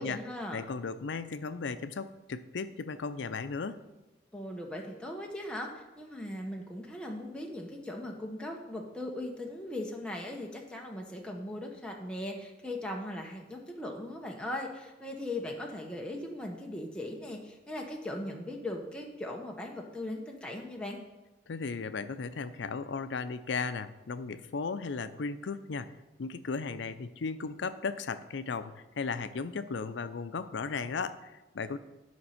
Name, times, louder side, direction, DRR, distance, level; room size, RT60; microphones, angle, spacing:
voice 1, 0.0-0.6 4.3-21.0, left 1 dB, 5° left, 0 dB, 0.8 m, -39 dB
voice 2, 0.5-3.8 21.5-31.8, left 4 dB, 85° left, 12 dB, 0.5 m, -36 dB
9.5 x 5.2 x 5.7 m, 1.1 s
head